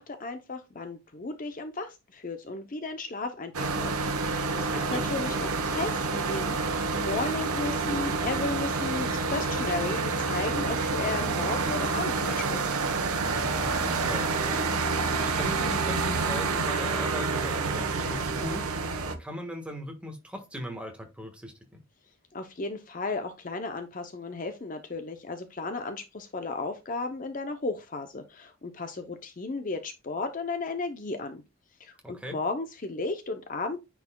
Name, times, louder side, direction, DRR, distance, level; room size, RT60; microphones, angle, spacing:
voice 1, 0.0-12.7 22.3-31.4 31.8-33.8, left 3 dB, 35° left, 0.5 m, -34 dB
sound 1, 3.5-19.2, right 4 dB, 80° right, 1.0 m, -28 dB
voice 2, 4.7-5.1 13.2-14.7 15.2-18.9 19.2-21.8 32.0-32.4, equal, 5° right, 1.2 m, -39 dB
9.3 x 4.7 x 2.2 m
head